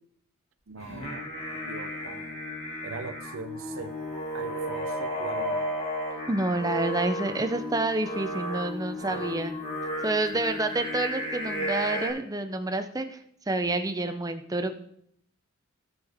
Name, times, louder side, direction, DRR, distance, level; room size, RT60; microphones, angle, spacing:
voice 1, 0.7-2.4 2.8-4.0 4.3-5.7 9.1-9.4 10.3-10.5, right 4 dB, 70° right, 6 dB, 0.6 m, -41 dB
Singing, 0.8-12.1, equal, 30° left, 1.9 m, -33 dB
voice 2, 6.3-9.6 10.0-13.2 13.5-14.7, right 2 dB, 15° right, 8 dB, 0.6 m, -28 dB
16.0 x 5.5 x 3.5 m, 0.71 s
head